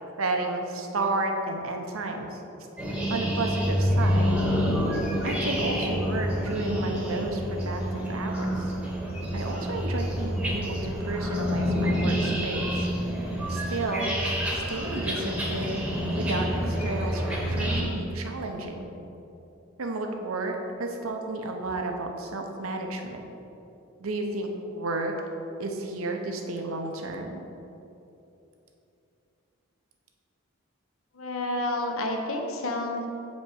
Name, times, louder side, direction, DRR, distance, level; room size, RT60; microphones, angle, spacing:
voice 1, 0.2-2.4 3.1-4.4 5.2-8.7 9.3-12.9 13.5-14.2 14.5-15.9 16.2-18.9 19.8-23.2 24.0-25.1 25.6-27.4, right 2 dB, 80° right, 3 dB, 0.8 m, -32 dB
sound 1, 2.8-17.8, equal, 5° right, 0.9 m, -28 dB
voice 2, 31.1-33.1, left 1 dB, 80° left, 2 dB, 0.9 m, -30 dB
5.2 x 4.6 x 6.3 m, 2.9 s
head